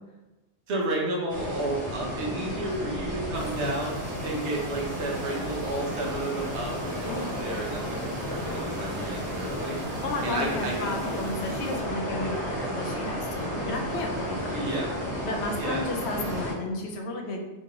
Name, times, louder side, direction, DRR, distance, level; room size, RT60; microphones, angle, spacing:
voice 1, 0.7-4.0 4.2-9.8 10.2-11.4 14.5-14.9 15.6-15.9, right 1 dB, 80° right, -2 dB, 1.1 m, -32 dB
sound 1, 1.3-16.5, equal, 5° left, 1.5 m, -33 dB
sound 2, 3.3-11.8, right 3 dB, 60° right, 0.7 m, -49 dB
voice 2, 7.1-7.4 9.8-14.6 15.2-17.4, left 2 dB, 75° left, 2 dB, 0.8 m, -33 dB
3.0 x 2.6 x 2.8 m, 1.1 s
omnidirectional pair, 1.1 m